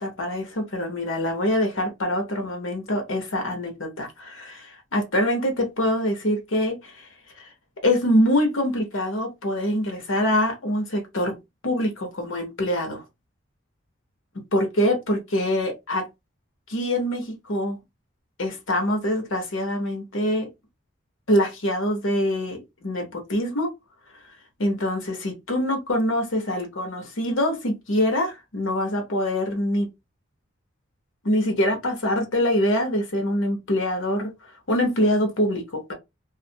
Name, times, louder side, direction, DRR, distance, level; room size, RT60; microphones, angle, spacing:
voice 1, 0.0-7.1 7.4-7.5 7.8-11.3 11.6-13.0 14.5-16.0 16.7-17.8 18.4-20.5 21.3-23.7 24.6-29.9 31.2-34.3 34.7-35.9, left 1 dB, 75° left, 1.0 m, -24 dB
2.5 x 2.4 x 2.8 m
head